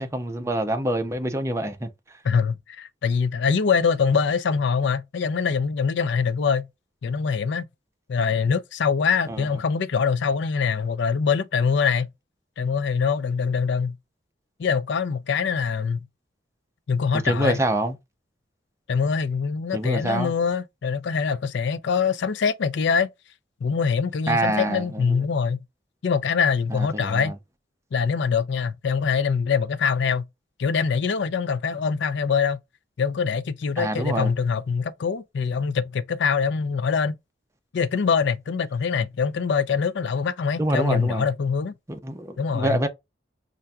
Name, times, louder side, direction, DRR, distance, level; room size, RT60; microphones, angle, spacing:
voice 1, 0.0-1.9 9.3-9.5 17.2-18.0 19.7-20.3 24.3-25.2 26.7-27.3 33.8-34.3 40.6-41.2 41.9-42.9, right 1 dB, 15° right, 0.6 m, -26 dB
voice 2, 2.2-6.7 7.0-7.7 8.1-12.1 12.6-14.0 14.6-16.1 16.9-17.6 18.9-23.1 23.6-25.6 26.0-27.3 27.9-30.3 30.6-32.6 33.0-37.1 37.7-41.7 42.4-42.8, left 6 dB, 65° left, 0.4 m, -24 dB
5.5 x 2.5 x 2.3 m
head